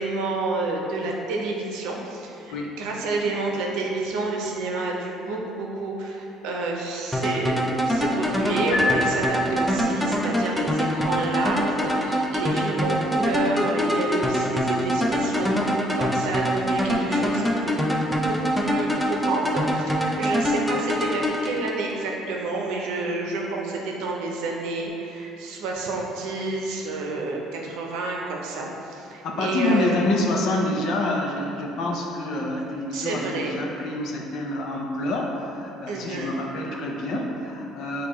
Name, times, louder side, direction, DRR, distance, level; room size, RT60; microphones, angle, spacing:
voice 1, 0.0-17.8 18.2-30.0 32.9-33.6 35.9-36.4, right 3 dB, 80° right, -1 dB, 0.6 m, -29 dB
sound 1, 7.1-22.2, equal, 5° left, 0.3 m, -24 dB
Piano, 8.7-10.0, left 2 dB, 75° left, 0.9 m, -26 dB
voice 2, 29.2-38.1, left 2 dB, 55° left, 0 dB, 0.5 m, -27 dB
6.4 x 2.3 x 3.0 m, 2.8 s
cardioid pair, 145°, 0 cm